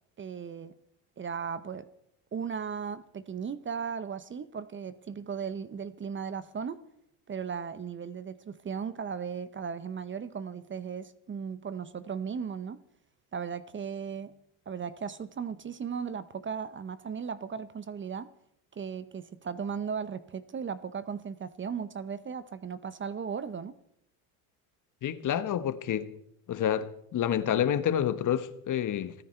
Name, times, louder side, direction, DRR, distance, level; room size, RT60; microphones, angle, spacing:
voice 1, 0.2-0.7 1.2-1.9 2.3-6.8 7.3-12.8 13.3-14.4 14.7-18.3 18.8-23.8, right 6 dB, 25° right, 0.9 m, -36 dB
voice 2, 25.0-26.1 26.5-29.1, left 10 dB, 45° left, 1.4 m, -28 dB
28.5 x 10.0 x 4.5 m
supercardioid pair, 85°, 43 cm